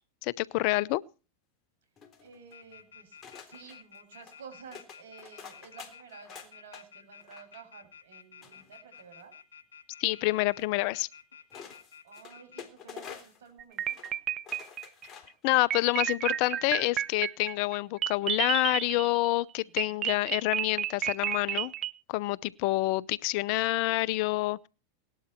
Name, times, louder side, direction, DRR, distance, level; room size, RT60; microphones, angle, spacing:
voice 1, 0.2-1.0 10.0-11.1 15.4-21.7 22.1-24.7, left 19 dB, 55° left, 0.7 m, -28 dB
sound 1, 2.0-2.6 3.2-3.8 4.2-4.4 4.7-6.8 7.2-7.6 8.4-9.2 10.6-10.7 11.5-13.5 13.8-14.2 14.4-15.4 15.8-16.0, left 7 dB, 30° left, 3.6 m, -48 dB
voice 2, 2.2-3.2 3.4-9.3 12.0-14.0 19.6-20.0, right 6 dB, 75° right, 7.2 m, -52 dB
sound 2, 2.5-12.6, left 7 dB, 85° left, 2.5 m, -51 dB
sound 3, 13.6-15.1 15.7-19.3 19.8-21.9, right 11 dB, 35° right, 0.8 m, -31 dB
18.5 x 12.0 x 4.5 m
hypercardioid pair, 105°, 0 cm